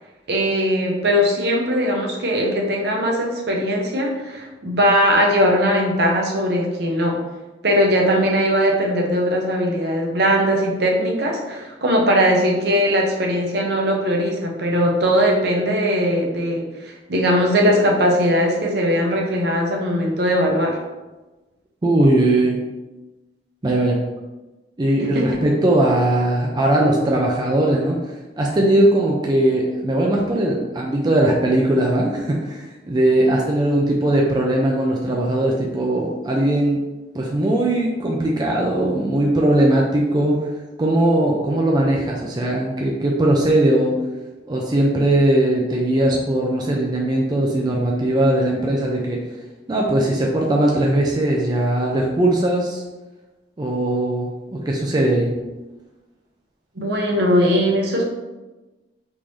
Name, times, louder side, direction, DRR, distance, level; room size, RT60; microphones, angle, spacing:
voice 1, 0.3-7.2 7.6-20.8 25.0-25.2 56.8-58.0, equal, 65° right, 0 dB, 0.7 m, -19 dB
voice 2, 21.8-22.6 23.6-24.0 24.8-28.0 28.4-36.8 37.1-40.4 40.8-44.0 44.5-49.2 49.7-52.8 53.6-55.3, right 1 dB, 25° right, -2 dB, 0.4 m, -19 dB
3.6 x 2.6 x 3.0 m, 1.1 s
head